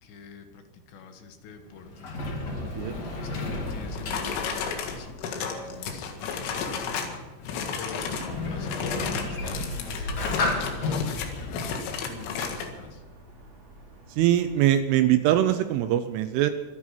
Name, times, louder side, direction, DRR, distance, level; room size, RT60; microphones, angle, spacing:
voice 1, 0.0-2.1 2.9-7.0 7.8-8.1 8.5-13.0, left 5 dB, 70° left, 6 dB, 3.4 m, -45 dB
Sliding door, 1.6-12.9, left 3 dB, 45° left, 2.5 m, -34 dB
sound 1, 3.7-7.2 7.4-8.3 8.6-12.7, left 6 dB, 85° left, 4.4 m, -33 dB
sound 2, 7.8-14.7, right 1 dB, 25° right, 4.8 m, -50 dB
voice 2, 14.1-16.5, right 12 dB, 80° right, 9 dB, 3.2 m, -22 dB
25.5 x 9.6 x 5.9 m, 1.2 s
omnidirectional pair, 5.7 m